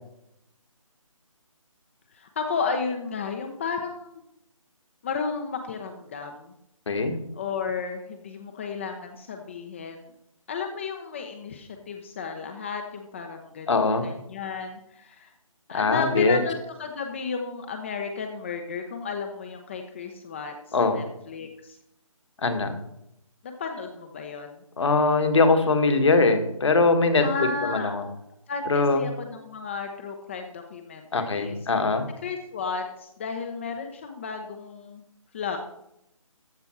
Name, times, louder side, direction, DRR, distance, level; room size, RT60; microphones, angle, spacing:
voice 1, 2.1-4.2 5.0-6.5 7.3-10.1 10.5-13.8 14.0-15.3 15.7-21.8 23.4-24.6 27.2-27.9 28.5-31.6 32.2-35.0 35.3-35.6, left 5 dB, 20° left, 4 dB, 0.7 m, -33 dB
voice 2, 6.9-7.2 13.7-14.0 15.7-16.4 20.7-21.0 22.4-22.8 24.8-27.2 27.6-28.0 28.7-29.0 31.1-32.1, left 3 dB, 55° left, 7 dB, 1.7 m, -21 dB
14.0 x 5.3 x 4.6 m, 0.79 s
figure-of-eight pair, 155°, 18 cm